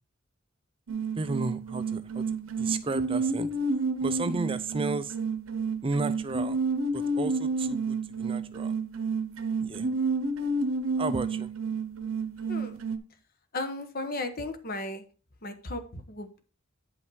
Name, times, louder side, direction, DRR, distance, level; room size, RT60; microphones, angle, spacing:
sound 1, 0.9-13.0, right 3 dB, 85° right, 1.0 m, -30 dB
voice 1, 1.2-2.2 2.6-3.5 4.0-5.1 5.8-6.6 6.9-8.7 9.6-9.9 11.0-11.5, right 3 dB, 25° right, 0.5 m, -33 dB
voice 2, 12.5-12.8 13.5-15.0 15.4-16.4, left 2 dB, 45° left, 1.2 m, -35 dB
9.1 x 5.5 x 4.7 m
head